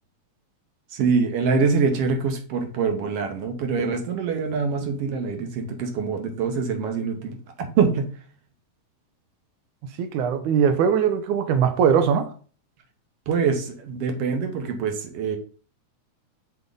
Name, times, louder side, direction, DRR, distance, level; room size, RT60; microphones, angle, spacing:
voice 1, 0.9-8.1 13.3-15.4, right 5 dB, 60° right, 1.8 m, -24 dB
voice 2, 10.0-12.3, right 7 dB, 75° right, 2.2 m, -20 dB
6.2 x 3.7 x 5.3 m
omnidirectional pair, 3.6 m